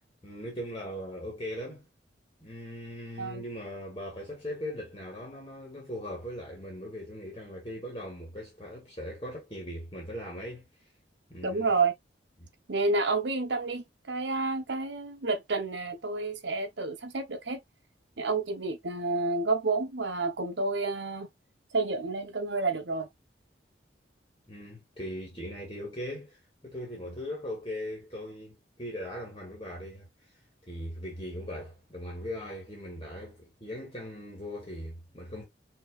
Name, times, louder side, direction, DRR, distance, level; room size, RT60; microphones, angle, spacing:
voice 1, 0.2-1.9 2.4-10.7 11.3-11.7 12.4-12.5 24.5-30.1 30.7-35.4, equal, 25° left, 1.7 m, -39 dB
voice 2, 11.4-11.9 12.7-17.6 18.2-21.3 21.7-23.1, right 3 dB, 75° right, 0.9 m, -30 dB
5.5 x 2.9 x 2.3 m
head